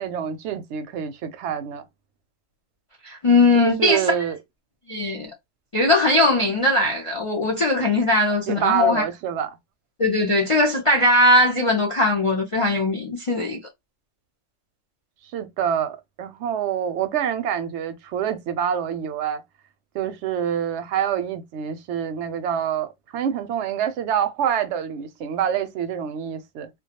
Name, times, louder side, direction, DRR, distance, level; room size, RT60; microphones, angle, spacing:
voice 1, 0.0-1.9 3.5-4.4 8.5-9.5 15.3-19.4 19.9-26.7, right 9 dB, 65° right, 0.8 m, -26 dB
voice 2, 3.0-4.0 4.9-5.3 5.7-9.0 10.0-13.6, left 2 dB, 45° left, 0.4 m, -19 dB
2.2 x 2.2 x 2.8 m
omnidirectional pair, 1.4 m